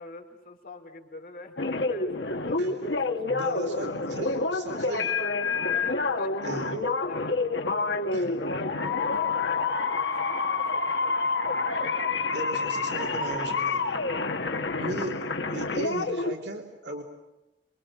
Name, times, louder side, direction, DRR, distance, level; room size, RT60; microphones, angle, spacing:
voice 1, 0.0-2.1 2.5-3.7 5.5-11.2 14.4-14.9 15.2-15.4, left 3 dB, 55° left, 3 dB, 4.3 m, -45 dB
sound 1, 1.6-16.3, left 3 dB, 85° left, 1.6 m, -28 dB
voice 2, 3.3-5.2 6.4-6.7 8.1-8.3 12.3-14.0 14.8-17.0, right 1 dB, 75° right, 2 dB, 3.1 m, -37 dB
27.5 x 25.0 x 7.4 m, 0.99 s
head